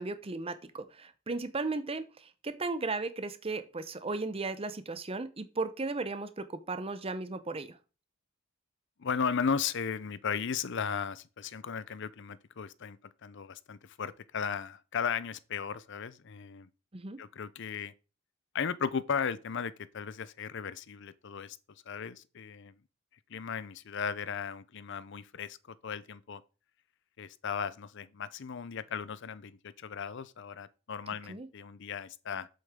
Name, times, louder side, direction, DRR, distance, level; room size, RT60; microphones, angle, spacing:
voice 1, 0.0-7.8 16.9-17.2 31.3-31.5, right 3 dB, 25° right, 0.7 m, -36 dB
voice 2, 9.0-16.7 17.2-17.9 18.5-21.6 21.9-22.7 23.3-26.4 27.2-32.5, left 6 dB, 55° left, 0.5 m, -36 dB
8.3 x 7.6 x 3.6 m
head